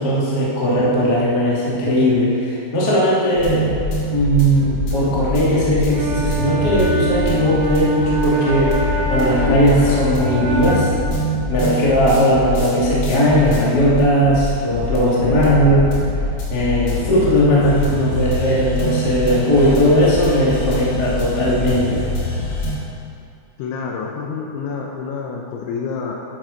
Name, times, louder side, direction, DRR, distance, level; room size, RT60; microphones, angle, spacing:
voice 1, 0.0-3.7 4.1-10.9 11.5-15.9 16.5-22.0, equal, 40° left, -7 dB, 1.4 m, -17 dB
sound 1, 3.4-22.7, left 2 dB, 60° left, 3.5 m, -24 dB
Wind instrument woodwind instrument, 5.9-11.1, right 4 dB, 75° right, 2.7 m, -24 dB
voice 2, 23.6-26.1, left 5 dB, 80° left, 0 dB, 3.0 m, -28 dB
11.5 x 7.8 x 5.1 m, 2.6 s
omnidirectional pair, 5.9 m